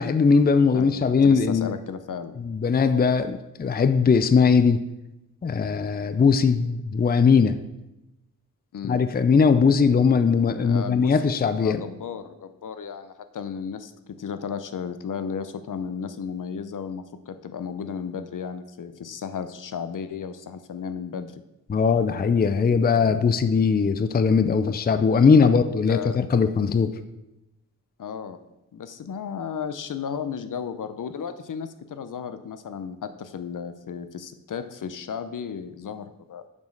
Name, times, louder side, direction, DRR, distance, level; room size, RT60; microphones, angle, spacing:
voice 1, 0.0-1.7 2.4-4.8 5.4-7.6 8.8-11.8 21.7-26.9, left 5 dB, 30° left, 11 dB, 0.5 m, -20 dB
voice 2, 0.7-2.4 2.6-2.7 8.7-9.0 10.6-21.3 25.9-26.2 28.0-28.4 28.7-36.4, left 7 dB, 65° left, 10 dB, 0.7 m, -34 dB
7.4 x 6.1 x 6.4 m, 0.93 s
wide cardioid pair, 95°, 34 cm